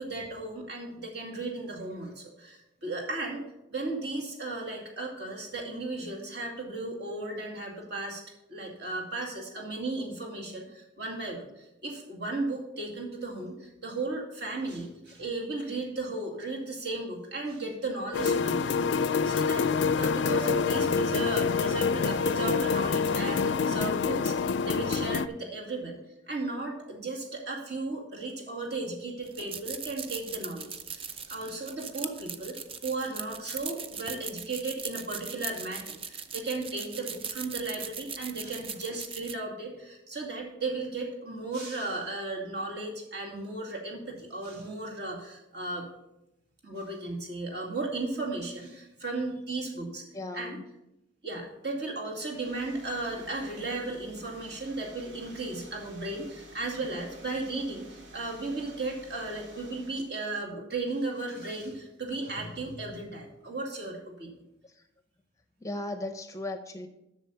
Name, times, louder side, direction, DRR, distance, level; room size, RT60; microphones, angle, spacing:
voice 1, 0.0-8.2 8.5-19.7 20.0-26.0 26.3-32.6 32.8-45.9 46.6-50.0 50.3-50.6 51.2-64.4, right 2 dB, 55° right, -1 dB, 2.4 m, -35 dB
sound 1, 18.1-25.3, left 5 dB, 70° left, 0.4 m, -26 dB
sound 2, 29.2-39.3, right 6 dB, 30° right, 0.5 m, -39 dB
voice 2, 50.1-50.6 64.6-64.9 65.6-66.9, left 2 dB, 15° left, 8 dB, 0.6 m, -37 dB
sound 3, 52.2-60.1, right 1 dB, 85° right, 1.9 m, -51 dB
8.0 x 6.4 x 6.8 m, 0.88 s
head